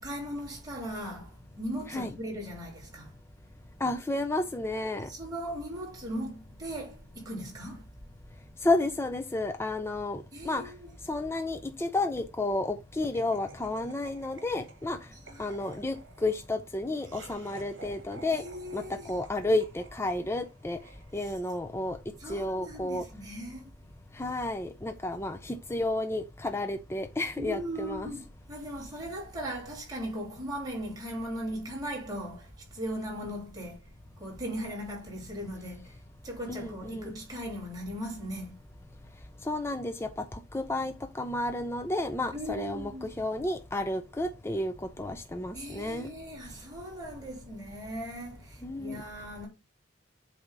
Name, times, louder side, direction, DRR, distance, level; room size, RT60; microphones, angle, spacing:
voice 1, 0.0-3.1 5.1-7.9 10.3-11.0 15.1-15.5 18.3-19.1 21.2-21.3 22.2-23.7 27.4-33.8 34.2-35.9 36.2-38.5 42.3-43.1 45.5-49.5, equal, 20° right, 3.0 m, -38 dB
voice 2, 3.8-5.1 8.6-10.7 11.1-15.0 15.4-18.4 18.7-20.8 21.1-22.0 22.3-23.1 24.1-28.1 36.5-37.1 39.4-46.1 48.6-49.0, left 2 dB, 15° left, 0.5 m, -31 dB
Laughter, 13.1-21.5, right 3 dB, 70° right, 1.6 m, -52 dB
7.8 x 2.8 x 5.1 m
head